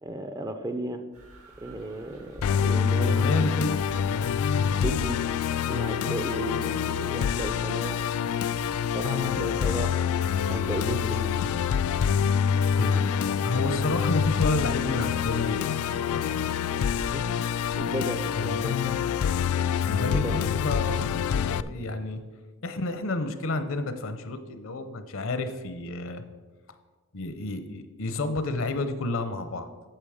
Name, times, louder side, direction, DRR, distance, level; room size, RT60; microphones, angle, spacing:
voice 1, 0.0-1.0 1.6-3.3 4.7-5.2 5.7-8.1 8.9-10.0 10.5-11.3 17.1-17.5 17.8-19.0 20.2-20.4, right 2 dB, 15° right, 8 dB, 0.5 m, -34 dB
sound 1, 1.1-17.8, right 1 dB, 80° right, 2.1 m, -50 dB
Musical instrument, 2.4-21.6, left 7 dB, 75° left, 0.3 m, -26 dB
voice 2, 3.0-3.9 9.1-9.6 10.9-11.1 12.7-16.3 18.3-18.7 19.9-21.1 21.3-22.2 22.6-26.2 27.1-29.7, left 2 dB, 60° left, 10 dB, 0.7 m, -31 dB
8.9 x 6.5 x 4.9 m, 1.3 s
head